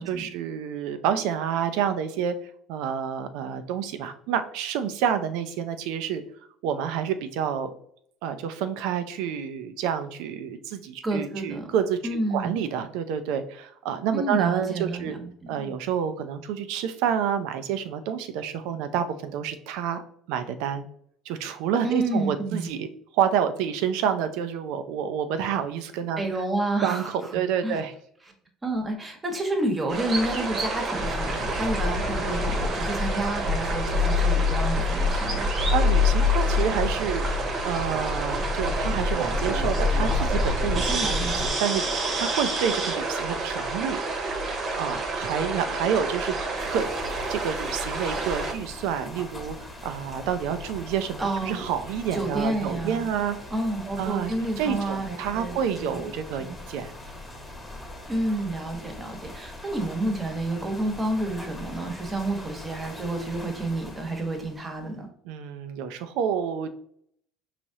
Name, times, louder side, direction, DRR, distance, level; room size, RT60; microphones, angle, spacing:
voice 1, 0.0-2.4 2.7-6.2 6.6-7.7 8.2-15.2 15.5-20.0 20.3-20.9 21.3-22.9 23.1-26.2 26.8-27.9 35.7-37.2 37.6-44.0 44.8-46.9 47.3-49.6 49.8-53.4 54.0-54.3 54.6-56.9 65.2-66.7, right 8 dB, 75° right, 10 dB, 0.5 m, -28 dB
voice 2, 11.0-11.7 12.0-12.6 14.1-15.7 21.8-22.7 26.2-27.3 27.6-27.8 28.6-35.5 40.9-41.4 51.2-51.6 52.1-53.1 53.5-55.5 55.9-56.1 56.4-56.5 58.1-65.1, right 2 dB, 20° right, 4 dB, 1.1 m, -29 dB
sound 1, 29.9-48.5, equal, 45° right, 1.0 m, -27 dB
sound 2, 31.0-41.5, left 3 dB, 30° left, 0.5 m, -30 dB
sound 3, 46.6-64.9, left 2 dB, 5° left, 1.1 m, -42 dB
4.8 x 2.9 x 2.7 m, 0.66 s
supercardioid pair, 100°, 0 cm